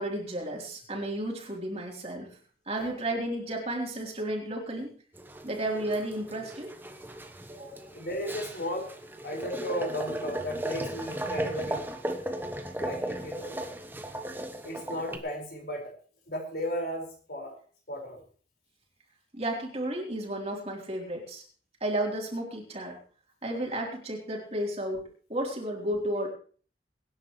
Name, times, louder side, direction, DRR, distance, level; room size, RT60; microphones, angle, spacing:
voice 1, 0.0-2.4 2.7-4.9 5.4-6.7 7.5-7.7 19.3-21.4 21.8-23.0 23.4-26.3, right 1 dB, 35° right, -1 dB, 3.7 m, -33 dB
sound 1, 5.1-15.2, right 1 dB, 10° right, 1.1 m, -36 dB
voice 2, 7.5-8.9 9.2-11.8 12.8-13.7 14.6-15.9 16.3-17.5 17.9-18.2, equal, 60° left, 0 dB, 5.3 m, -35 dB
24.0 x 10.5 x 3.2 m, 0.42 s
head